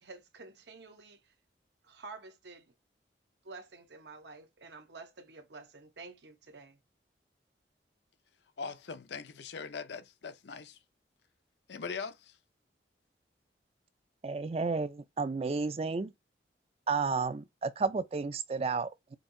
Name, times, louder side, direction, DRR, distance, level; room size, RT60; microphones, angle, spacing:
voice 1, 0.0-1.3 1.8-2.7 3.4-6.8, right 3 dB, 75° right, 0.8 m, -50 dB
voice 2, 8.6-10.8 11.7-12.4, left 5 dB, 75° left, 0.6 m, -41 dB
voice 3, 14.2-16.1 16.9-19.2, right 4 dB, 35° right, 0.3 m, -32 dB
5.2 x 2.7 x 2.6 m
head